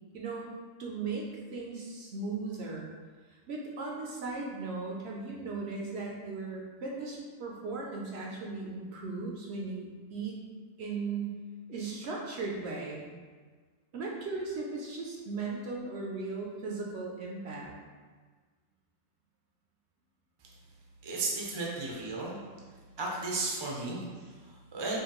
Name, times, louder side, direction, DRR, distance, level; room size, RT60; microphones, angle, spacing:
voice 1, 0.1-0.5 0.8-2.9 3.3-10.4 10.8-11.3 11.7-13.1 13.9-17.7, right 3 dB, 65° right, -2 dB, 0.8 m, -37 dB
voice 2, 21.0-22.4 23.0-25.0, right 3 dB, 35° right, -3 dB, 0.4 m, -34 dB
4.9 x 2.3 x 3.0 m, 1.5 s
omnidirectional pair, 1.4 m